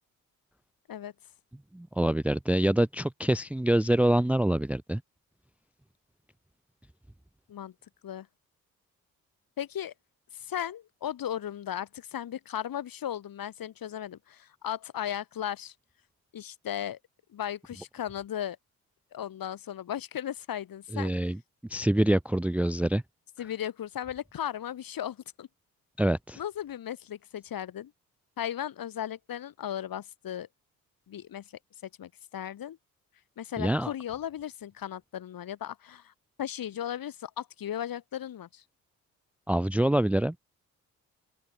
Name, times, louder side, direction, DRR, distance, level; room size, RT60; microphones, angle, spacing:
voice 1, 1.7-5.0 20.9-21.4 21.7-23.0 26.0-26.4 33.6-33.9 39.5-40.3, right 1 dB, 5° right, 0.7 m, -25 dB
voice 2, 9.6-9.9 10.3-15.7 16.3-17.0 17.3-18.6 19.1-21.1 23.4-25.5 26.4-27.9 28.4-30.5 31.1-31.4 32.0-32.8 33.4-36.1 36.4-38.6, left 10 dB, 50° left, 3.2 m, -36 dB
figure-of-eight pair, 40°, 44 cm